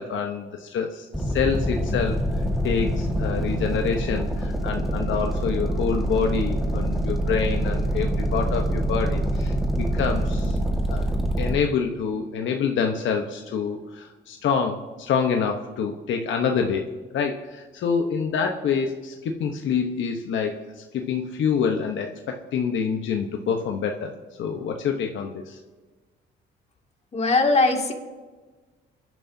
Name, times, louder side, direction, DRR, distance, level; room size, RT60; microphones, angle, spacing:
voice 1, 0.0-2.2 2.6-10.6 10.9-11.1 11.4-16.9 17.1-24.1 24.4-25.6, left 6 dB, 75° left, 3 dB, 1.0 m, -26 dB
sound 1, 1.1-11.6, right 1 dB, ahead, 1.7 m, -25 dB
voice 2, 27.1-27.9, left 3 dB, 30° left, 1 dB, 2.3 m, -20 dB
29.5 x 10.5 x 2.8 m, 1.3 s
cardioid pair, 90°, 20 cm